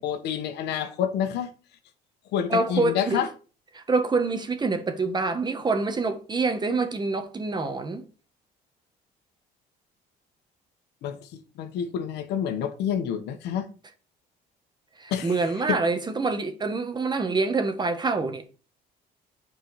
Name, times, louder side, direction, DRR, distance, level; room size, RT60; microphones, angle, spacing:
voice 1, 0.0-1.5 2.3-3.3 11.0-13.7 15.1-15.8, left 9 dB, 80° left, 1.4 m, -28 dB
voice 2, 2.5-3.2 3.7-8.0 15.0-18.4, right 3 dB, 25° right, 1.6 m, -26 dB
9.0 x 4.8 x 4.9 m
cardioid pair, 110°, 17 cm